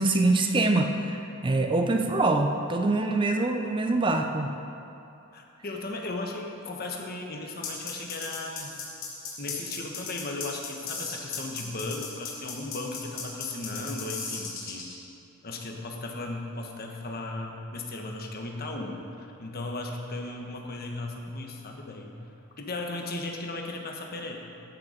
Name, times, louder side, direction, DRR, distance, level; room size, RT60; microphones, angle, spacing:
voice 1, 0.0-4.5, right 2 dB, 25° right, 5 dB, 0.5 m, -24 dB
voice 2, 5.3-8.8 9.4-14.9 15.4-22.2 22.6-24.4, left 2 dB, 45° left, 1 dB, 1.2 m, -36 dB
sound 1, 7.6-14.9, left 5 dB, 65° left, 2.8 m, -36 dB
13.0 x 6.9 x 5.1 m, 2.7 s
head